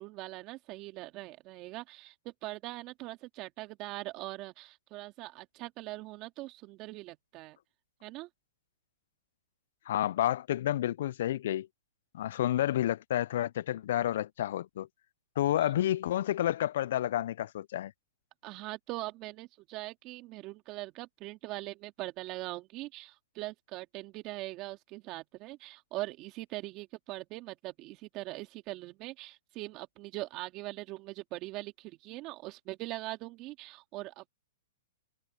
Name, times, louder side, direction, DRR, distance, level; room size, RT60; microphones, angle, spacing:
voice 1, 0.0-7.6 8.0-8.3 15.6-15.7 18.4-34.3, right 19 dB, 35° right, 2.0 m, -42 dB
voice 2, 9.9-11.7 12.1-14.9 15.4-17.9, left 12 dB, 60° left, 0.3 m, -30 dB
hypercardioid pair, 135°, 0 cm